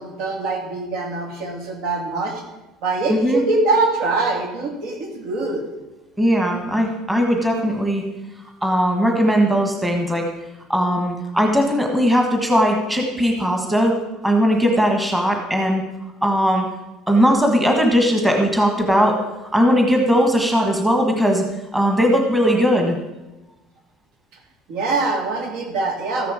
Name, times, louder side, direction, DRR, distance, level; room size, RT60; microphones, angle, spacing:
voice 1, 0.0-2.4 2.8-5.6 24.7-26.3, right 3 dB, 70° right, 2 dB, 2.8 m, -23 dB
voice 2, 3.1-3.4 6.2-8.0 8.6-10.3 10.7-14.0 14.2-15.8 16.2-16.6 17.1-19.2 19.5-21.4 21.7-23.0, equal, 5° right, 2 dB, 1.4 m, -18 dB
14.0 x 10.0 x 5.0 m, 1.0 s
cardioid pair, 160°, 0 cm